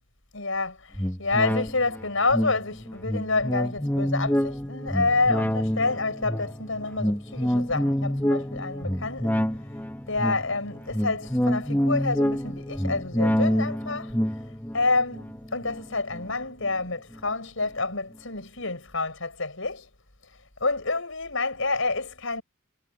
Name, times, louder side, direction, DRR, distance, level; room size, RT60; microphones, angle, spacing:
voice 1, 0.3-9.4 10.1-14.1 14.7-19.9 20.6-22.4, left 3 dB, 70° left, 6.6 m, -28 dB
sound 1, 0.9-16.7 17.1-17.2, equal, 10° left, 1.7 m, -27 dB
head